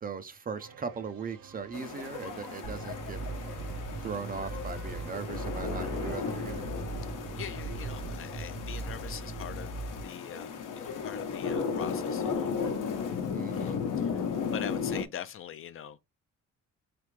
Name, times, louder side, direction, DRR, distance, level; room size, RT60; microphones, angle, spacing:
voice 1, 0.0-3.2 4.0-6.6 13.3-13.8, right 5 dB, 30° right, 0.4 m, -38 dB
sound 1, 0.5-8.1, right 6 dB, 90° right, 0.9 m, -52 dB
sound 2, 1.7-15.0, left 6 dB, 75° left, 0.9 m, -35 dB
sound 3, 2.6-10.0, right 3 dB, 50° right, 0.9 m, -39 dB
voice 2, 7.3-9.7 10.0-12.5 13.5-14.3 14.5-16.1, left 9 dB, 45° left, 0.4 m, -42 dB
3.7 x 3.3 x 3.1 m
cardioid pair, 110°, 31 cm